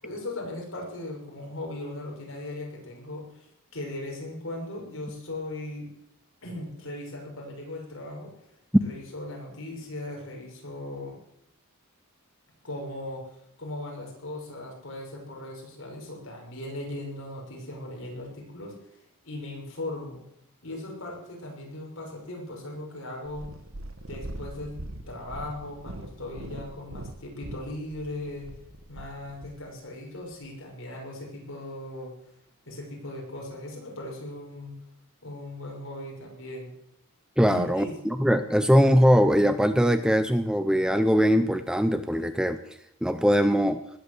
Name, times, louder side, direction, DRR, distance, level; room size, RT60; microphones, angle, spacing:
voice 1, 0.0-3.2 3.7-5.9 6.4-8.5 8.8-11.2 12.6-18.8 19.2-20.2 20.6-23.5 24.1-24.8 25.1-28.5 28.9-32.1 32.6-34.7 35.2-36.7 37.5-37.9, left 1 dB, 65° left, -1 dB, 6.3 m, -38 dB
Purr, 23.2-29.6 30.3-30.4, right 1 dB, 65° right, 1.6 m, -41 dB
voice 2, 37.4-42.6 43.0-43.8, equal, 5° right, 10 dB, 0.6 m, -21 dB
20.0 x 8.4 x 8.2 m, 0.75 s
head